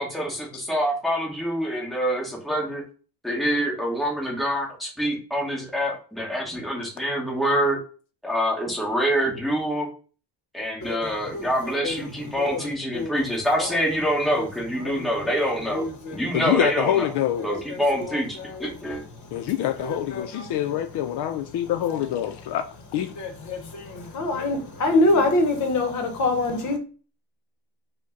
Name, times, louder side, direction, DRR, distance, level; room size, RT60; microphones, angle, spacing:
voice 1, 0.0-2.8 3.2-7.8 8.2-9.9 10.5-17.1 17.4-19.0, equal, ahead, 1.1 m, -26 dB
voice 2, 10.8-12.7 12.9-13.1 14.8-15.3 15.7-16.2 17.5-17.6 17.9-18.9 19.8-20.2 23.2-26.8, left 2 dB, 45° left, 0.9 m, -26 dB
voice 3, 16.3-17.5 19.3-22.6 22.9-23.1, left 11 dB, 70° left, 0.5 m, -25 dB
5.1 x 2.2 x 3.7 m
cardioid pair, 155°, 41 cm